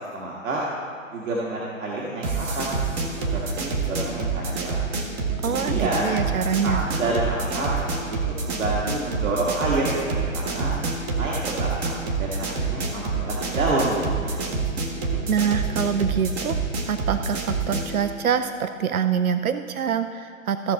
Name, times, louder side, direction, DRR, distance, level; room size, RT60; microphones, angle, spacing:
voice 1, 0.1-0.6 1.1-2.8 3.3-4.9 5.5-6.2 6.6-7.7 8.1-10.7 11.1-14.4, right 2 dB, 70° right, -5 dB, 1.8 m, -28 dB
sound 1, 2.2-18.0, right 4 dB, 15° right, 0.6 m, -27 dB
voice 2, 5.4-6.8 15.3-16.6 16.9-20.7, right 7 dB, 90° right, 9 dB, 0.6 m, -25 dB
15.0 x 6.1 x 4.3 m, 2.3 s
figure-of-eight pair, 130°, 41 cm